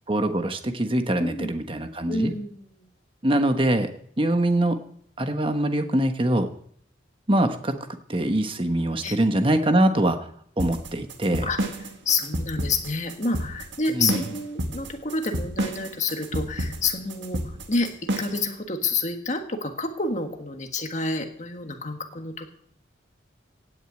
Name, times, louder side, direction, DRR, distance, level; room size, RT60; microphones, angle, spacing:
voice 1, 0.1-2.3 3.2-3.9 4.2-4.8 5.2-6.5 7.3-7.8 8.1-10.2 10.6-11.5 14.0-14.2, right 1 dB, 25° right, 7 dB, 1.2 m, -23 dB
voice 2, 1.1-1.5 2.1-2.9 9.0-9.2 11.4-17.9 18.2-22.5, left 3 dB, 40° left, 5 dB, 1.7 m, -29 dB
sound 1, 10.6-18.5, right 1 dB, 70° right, 1.8 m, -30 dB
17.0 x 6.6 x 8.9 m, 0.63 s
head